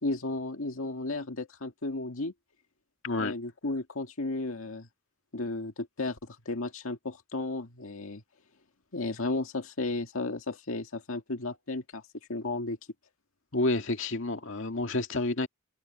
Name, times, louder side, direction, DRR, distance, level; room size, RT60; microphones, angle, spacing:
voice 1, 0.0-2.3 3.2-4.9 5.3-8.2 8.9-12.0 12.3-12.8, left 2 dB, 85° left, 2.0 m, -34 dB
voice 2, 13.5-15.5, left 2 dB, 65° left, 2.1 m, -29 dB
head